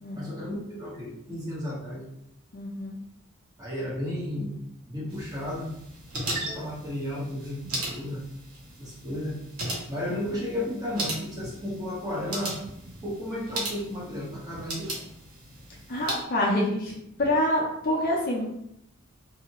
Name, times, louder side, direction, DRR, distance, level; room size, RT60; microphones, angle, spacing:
voice 1, 0.1-2.1 3.6-4.6 4.9-5.7 6.1-8.2 8.8-9.4 9.9-12.6 13.0-14.9, left 1 dB, 15° right, -7 dB, 1.0 m, -33 dB
voice 2, 2.5-3.0 15.9-18.4, left 1 dB, 45° left, -2 dB, 0.5 m, -26 dB
sound 1, 5.1-16.2, right 2 dB, 90° right, 0.9 m, -37 dB
2.7 x 2.4 x 2.9 m, 0.78 s
head